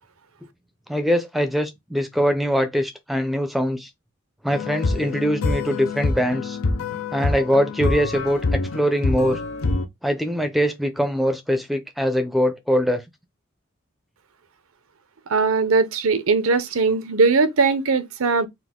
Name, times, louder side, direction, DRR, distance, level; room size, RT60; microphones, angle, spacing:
voice 1, 0.9-3.9 4.4-6.6 7.1-9.4 10.0-13.0, equal, ahead, 0.5 m, -22 dB
sound 1, 4.5-9.9, left 3 dB, 80° left, 0.6 m, -25 dB
voice 2, 15.3-18.5, right 4 dB, 85° right, 0.7 m, -20 dB
4.0 x 2.6 x 3.6 m
head